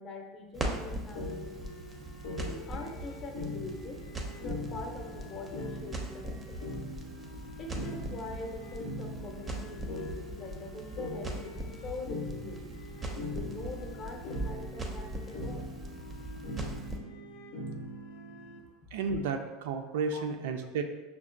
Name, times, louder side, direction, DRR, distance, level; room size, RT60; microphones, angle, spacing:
voice 1, 0.0-1.9 2.5-4.0 4.4-6.6 7.6-12.7 13.3-15.7 20.1-20.2, left 3 dB, 35° left, 1 dB, 0.6 m, -43 dB
Crackle, 0.5-17.0, right 1 dB, 15° right, 0.5 m, -40 dB
sound 1, 1.2-18.6, left 1 dB, 80° left, 0.6 m, -42 dB
voice 2, 18.9-20.8, right 4 dB, 85° right, 6 dB, 0.4 m, -32 dB
5.7 x 2.1 x 2.5 m, 1.2 s
supercardioid pair, 145°, 0 cm